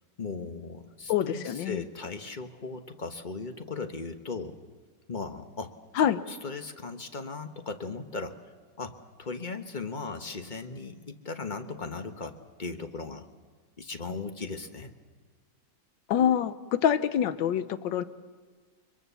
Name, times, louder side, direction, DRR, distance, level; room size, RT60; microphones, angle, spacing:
voice 1, 0.2-4.6 5.1-8.4 8.8-12.3 12.6-13.3 13.8-14.9, left 4 dB, 30° left, 7 dB, 1.2 m, -37 dB
voice 2, 1.1-1.8 6.0-6.2 16.1-18.0, left 9 dB, 80° left, 13 dB, 1.6 m, -26 dB
24.5 x 22.5 x 7.0 m, 1.5 s
omnidirectional pair, 2.0 m